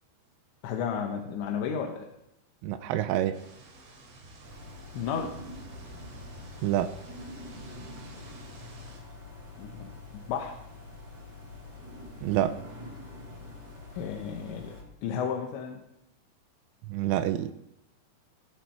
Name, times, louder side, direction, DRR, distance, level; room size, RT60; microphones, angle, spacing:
voice 1, 0.6-2.1 4.9-5.4 9.6-10.6 13.9-15.9, left 7 dB, 75° left, 2 dB, 3.3 m, -33 dB
voice 2, 2.6-3.4 6.6-6.9 12.2-12.5 16.9-17.5, right 12 dB, 90° right, 11 dB, 3.3 m, -27 dB
sound 1, 3.3-9.0, right 2 dB, 75° right, 6.2 m, -50 dB
sound 2, 4.4-14.8, left 2 dB, 30° right, 6.1 m, -45 dB
23.5 x 10.5 x 4.5 m, 0.84 s
omnidirectional pair, 5.6 m